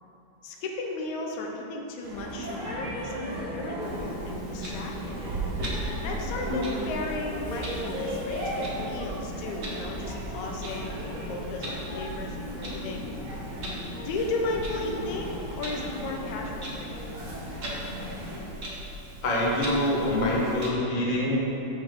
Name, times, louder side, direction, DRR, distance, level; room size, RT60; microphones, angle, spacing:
voice 1, 0.4-5.3 6.0-13.1 14.0-17.2, left 2 dB, 75° left, 1 dB, 2.3 m, -35 dB
sound 1, 2.0-18.4, equal, 75° right, 4.0 m, -36 dB
Clock, 3.8-20.7, right 1 dB, 50° right, 0.8 m, -39 dB
voice 2, 19.2-21.4, left 1 dB, 60° left, -5 dB, 0.4 m, -25 dB
15.5 x 5.5 x 3.8 m, 3.0 s
omnidirectional pair, 3.5 m